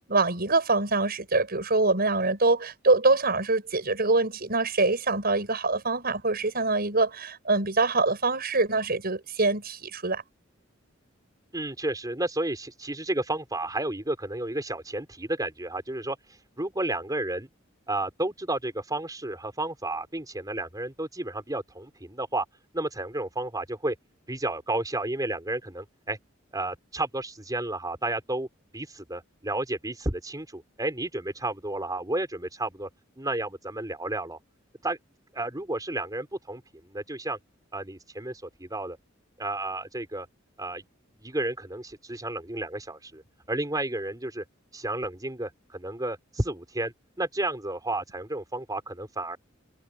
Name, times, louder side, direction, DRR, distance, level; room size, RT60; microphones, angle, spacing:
voice 1, 0.0-10.2, right 3 dB, 50° right, 6.8 m, -24 dB
voice 2, 11.5-16.2 16.6-17.5 17.9-22.4 22.7-23.9 24.3-26.2 26.5-28.5 28.7-32.9 33.2-34.4 34.8-35.0 35.3-36.6 36.9-37.4 37.7-39.0 39.4-40.3 40.6-40.8 41.2-43.2 43.5-44.4 44.7-46.9 47.2-49.4, right 2 dB, 20° right, 4.6 m, -32 dB
head